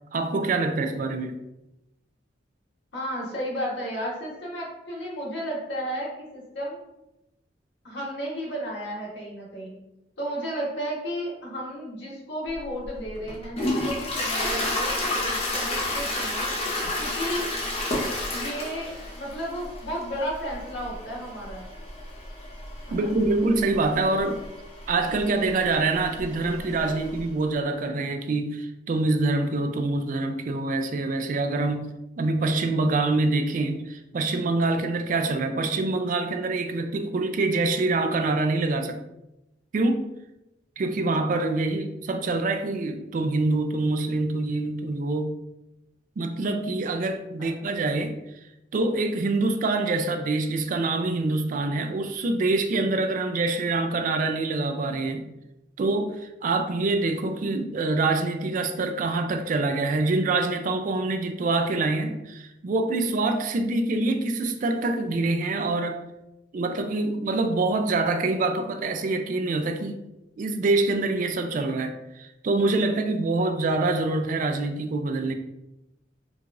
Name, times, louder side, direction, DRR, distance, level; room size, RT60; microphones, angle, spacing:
voice 1, 0.1-1.4 22.9-24.4 24.9-39.0 39.7-40.1 40.8-45.4 46.2-48.2 48.7-55.3 55.8-66.0 66.5-70.0 70.4-75.3, right 2 dB, 45° right, 6 dB, 0.3 m, -25 dB
voice 2, 2.9-6.8 7.8-9.8 10.2-16.5 17.0-17.5 18.3-21.7 22.9-23.1 47.4-47.5, equal, 85° left, -4 dB, 1.3 m, -33 dB
Toilet flush, 12.5-27.3, left 1 dB, 35° left, 0.7 m, -31 dB
4.6 x 2.4 x 2.5 m, 0.92 s
head